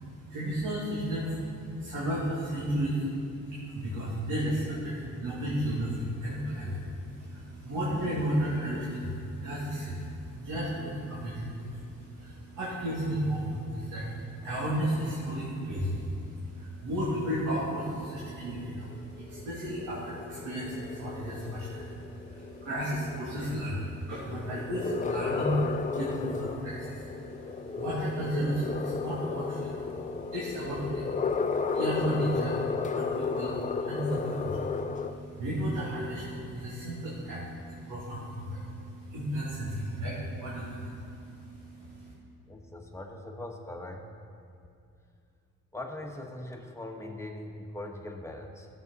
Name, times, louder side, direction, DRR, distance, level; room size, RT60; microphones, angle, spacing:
voice 1, 0.0-3.2 3.4-42.1, right 1 dB, 85° right, -8 dB, 2.6 m, -33 dB
sound 1, 17.7-35.1, left 5 dB, 25° left, 0.5 m, -34 dB
voice 2, 42.5-44.1 45.7-48.7, left 1 dB, 10° left, 1 dB, 1.3 m, -41 dB
15.0 x 7.6 x 4.1 m, 2.5 s
cardioid pair, 90°, 30 cm